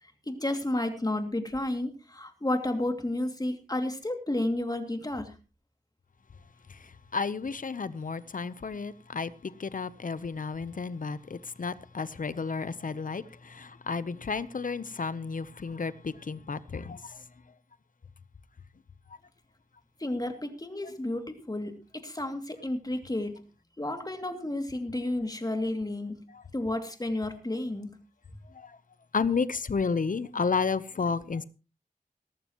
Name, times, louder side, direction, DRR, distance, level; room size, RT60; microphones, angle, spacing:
voice 1, 0.0-5.3 20.0-23.4 23.8-26.2 26.5-27.9, left 1 dB, 25° left, 2.5 m, -32 dB
voice 2, 7.1-13.2 13.5-17.0 29.1-31.4, left 5 dB, 65° left, 0.8 m, -32 dB
17.5 x 14.5 x 3.0 m
wide cardioid pair, 70°, 15 cm